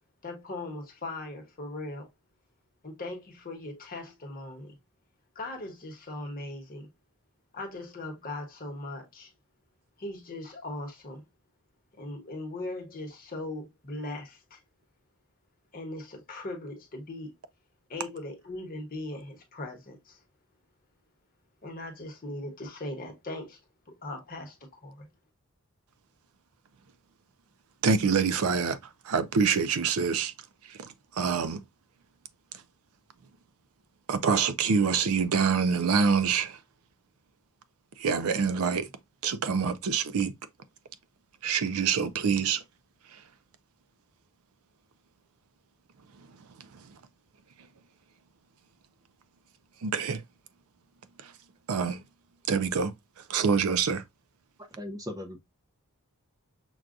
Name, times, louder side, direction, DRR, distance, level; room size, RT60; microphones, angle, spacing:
voice 1, 0.2-2.1 2.8-4.8 5.3-6.9 7.5-9.3 10.0-11.2 11.9-14.6 15.7-17.3 17.9-20.2 21.6-23.6 23.9-25.1, left 2 dB, 40° left, 1.0 m, -39 dB
voice 2, 27.8-28.8 29.0-30.3 30.7-31.6 34.1-36.6 38.0-38.9 39.2-40.3 41.4-42.6 49.8-50.2 51.2-51.3 51.7-52.0 52.5-52.9 53.3-54.0, right 5 dB, 70° right, 0.5 m, -26 dB
voice 3, 54.6-55.4, left 1 dB, 15° right, 0.5 m, -38 dB
6.1 x 2.3 x 2.4 m
head